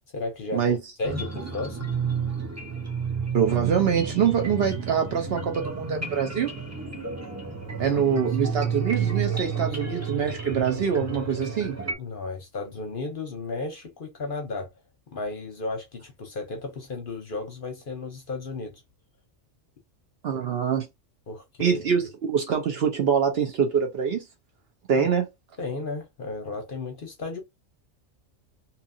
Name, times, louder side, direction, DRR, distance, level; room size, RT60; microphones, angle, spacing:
voice 1, 0.1-1.9 7.7-8.0 9.6-9.9 12.0-14.7 15.1-18.8 21.3-21.8 24.9-25.1 25.6-27.4, left 3 dB, 50° left, 0.7 m, -34 dB
sound 1, 1.0-11.9, right 5 dB, 20° right, 0.5 m, -31 dB
voice 2, 3.3-6.5 7.8-11.8 20.2-20.9 21.6-24.2 24.9-25.3, right 7 dB, 60° right, 0.8 m, -24 dB
2.8 x 2.4 x 2.6 m
omnidirectional pair, 1.4 m